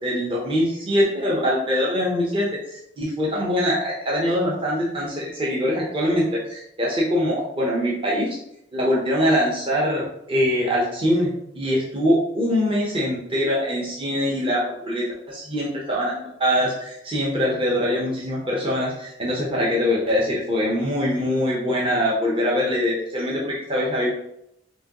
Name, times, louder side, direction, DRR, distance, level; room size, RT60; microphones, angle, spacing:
voice 1, 0.0-8.3 8.7-24.1, equal, 30° right, -4 dB, 0.7 m, -23 dB
4.8 x 2.8 x 2.9 m, 0.79 s
head